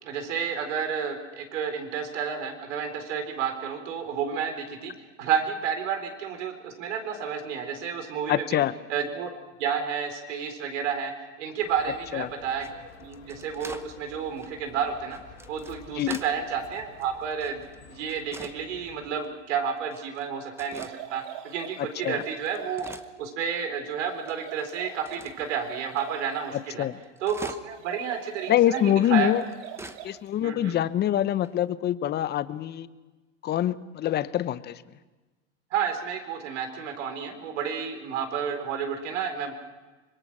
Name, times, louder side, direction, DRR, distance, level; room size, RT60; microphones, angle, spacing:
voice 1, 0.0-4.9 5.2-8.6 8.9-9.3 9.6-11.1 11.4-12.7 13.0-15.2 15.5-22.9 23.2-26.9 27.2-29.3 30.4-30.7 35.7-39.5, right 7 dB, 70° right, 6 dB, 4.3 m, -31 dB
voice 2, 8.3-8.7 12.1-12.3 15.9-16.2 22.0-22.2 26.8-27.0 28.5-29.4 30.0-32.9 33.4-34.8, left 11 dB, 25° left, 15 dB, 0.9 m, -25 dB
sound 1, 11.6-19.1, left 5 dB, 90° left, 6.1 m, -50 dB
sound 2, 12.5-13.9 14.4-14.5 15.1-16.4 16.7-17.8 18.1-18.6 19.1-19.3 19.9-20.3 20.6-21.0 21.5-21.6 22.0-23.6 23.9-24.0 24.3-25.5 26.0-26.1 26.3-26.4 26.6-27.9 28.2-28.3 29.0-30.0 30.3-30.4 30.6-30.7 31.4-31.7, right 2 dB, 5° right, 1.0 m, -44 dB
sound 3, 20.6-23.1 24.1-26.6 27.7-30.3, right 11 dB, 55° right, 2.4 m, -43 dB
25.5 x 22.0 x 6.2 m, 1.2 s
hypercardioid pair, 110°, 37 cm